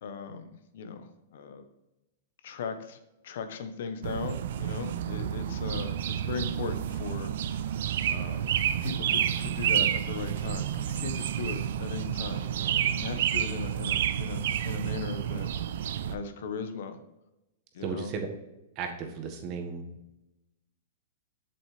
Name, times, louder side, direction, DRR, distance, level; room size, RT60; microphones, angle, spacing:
voice 1, 0.0-1.6 2.4-7.8 8.1-8.5 8.8-15.5 15.8-17.0 17.7-18.1, left 5 dB, 70° left, 9 dB, 1.1 m, -38 dB
sound 1, 4.0-16.2, right 10 dB, 65° right, 0.5 m, -30 dB
voice 2, 17.8-18.3 18.7-19.8, right 5 dB, 35° right, 4 dB, 1.5 m, -34 dB
7.6 x 7.5 x 3.3 m, 0.95 s
hypercardioid pair, 150°, 0 cm